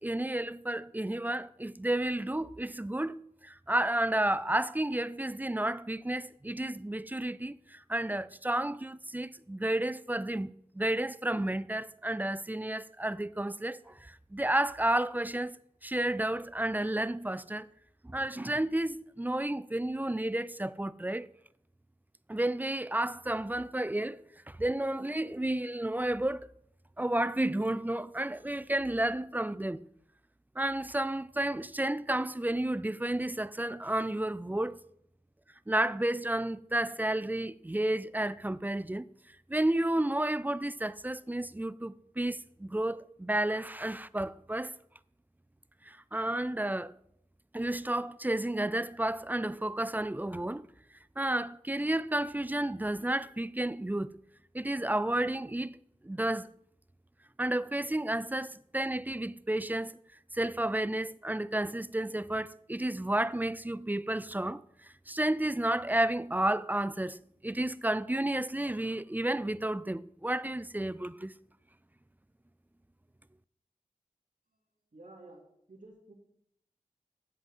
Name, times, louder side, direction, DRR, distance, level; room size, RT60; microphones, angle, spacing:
voice 1, 0.0-17.7 18.0-21.3 22.3-24.2 24.5-26.5 27.0-29.8 30.6-34.8 35.7-39.1 39.5-44.7 45.8-46.9 47.5-50.7 51.2-54.1 54.5-55.8 56.0-56.5 57.4-59.9 60.3-71.3, right 1 dB, 15° right, 0.3 m, -31 dB
voice 2, 74.9-75.4 75.7-76.1, right 2 dB, 75° right, 2.7 m, -52 dB
11.0 x 7.7 x 3.7 m
wide cardioid pair, 55°, 13 cm